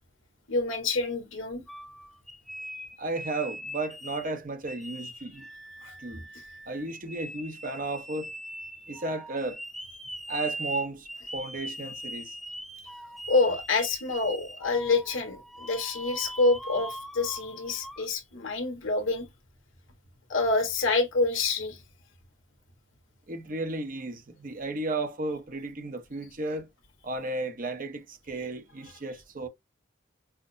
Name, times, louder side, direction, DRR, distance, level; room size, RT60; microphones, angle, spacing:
voice 1, 0.5-1.6 5.8-6.0 13.3-19.3 20.3-21.8, left 3 dB, 85° left, 1.4 m, -27 dB
sound 1, 1.7-4.3 4.7-18.1, equal, ahead, 0.5 m, -41 dB
voice 2, 3.0-5.5 6.0-6.3 6.7-8.3 8.9-9.6 10.3-12.4 23.3-26.7 27.0-29.5, right 2 dB, 45° right, 0.8 m, -34 dB
5.8 x 2.0 x 2.6 m
head